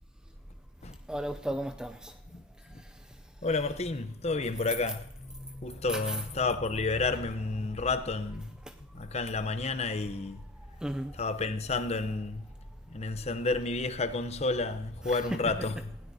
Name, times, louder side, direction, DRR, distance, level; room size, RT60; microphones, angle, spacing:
voice 1, 1.1-2.1 5.9-6.2 10.8-11.1 15.0-15.4, right 1 dB, 5° right, 0.4 m, -34 dB
voice 2, 3.4-8.5 8.9-10.4 11.1-12.5 12.9-15.9, left 3 dB, 30° left, 0.7 m, -31 dB
19.0 x 16.5 x 2.8 m
head